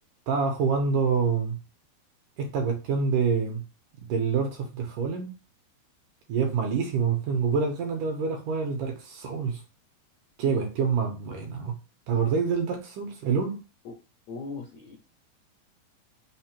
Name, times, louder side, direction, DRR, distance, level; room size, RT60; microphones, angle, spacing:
voice 1, 0.3-1.6 2.4-3.6 4.1-5.3 6.3-9.6 10.4-11.7 12.1-13.6, right 5 dB, 75° right, 2.1 m, -26 dB
voice 2, 14.3-15.0, left 4 dB, 85° left, 1.6 m, -38 dB
5.8 x 2.0 x 4.3 m
omnidirectional pair, 4.3 m